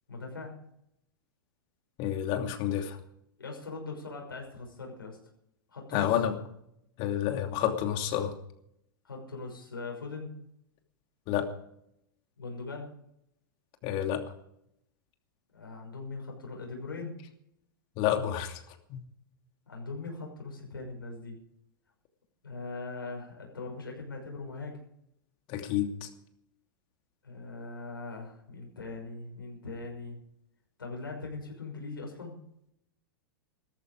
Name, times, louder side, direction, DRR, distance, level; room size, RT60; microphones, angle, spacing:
voice 1, 0.1-0.5 3.4-5.2 5.7-6.2 9.0-10.3 12.4-12.9 15.5-17.2 19.7-21.4 22.4-24.8 27.2-30.2 30.8-32.4, left 3 dB, 85° left, 0 dB, 6.0 m, -40 dB
voice 2, 2.0-3.0 5.9-6.4 7.0-8.3 11.3-11.5 13.8-14.2 18.0-18.6 18.9-19.0 25.5-26.1, left 10 dB, 45° left, 5 dB, 2.8 m, -29 dB
17.5 x 14.0 x 5.0 m, 0.74 s
figure-of-eight pair, 100°, 11 cm